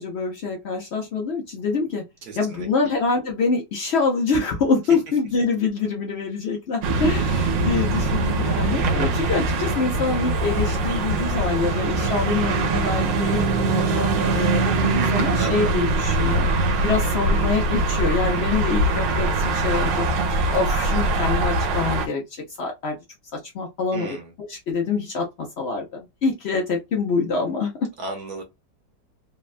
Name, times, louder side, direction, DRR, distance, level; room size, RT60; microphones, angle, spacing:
voice 1, 0.0-2.0 2.4-16.5 16.8-20.1 20.5-23.0 23.3-24.2 24.5-27.9, left 4 dB, 85° left, 0.5 m, -25 dB
voice 2, 2.2-2.7 7.3-7.4 15.3-15.7 23.9-24.3 28.0-28.4, right 3 dB, 65° right, 1.2 m, -34 dB
sound 1, 6.8-22.1, right 2 dB, 80° right, 1.3 m, -22 dB
3.3 x 2.1 x 2.4 m
omnidirectional pair, 2.0 m